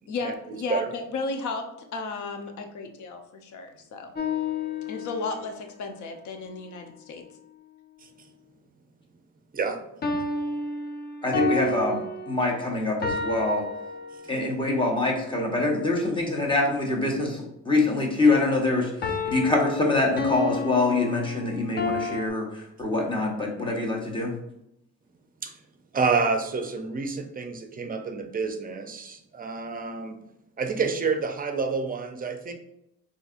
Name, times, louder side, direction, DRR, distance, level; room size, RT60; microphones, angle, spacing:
voice 1, 0.1-4.1 4.9-7.3, left 3 dB, 75° left, 6 dB, 0.6 m, -34 dB
sound 1, 4.2-5.5 10.0-14.5 19.0-22.3, left 3 dB, 35° left, 0.5 m, -31 dB
voice 2, 11.2-12.0 12.3-13.6 14.3-24.3, left 2 dB, 15° left, -1 dB, 1.0 m, -25 dB
voice 3, 25.9-30.2 30.6-32.5, right 4 dB, 30° right, 5 dB, 0.5 m, -28 dB
4.0 x 2.7 x 2.5 m, 0.82 s
cardioid pair, 90°, 30 cm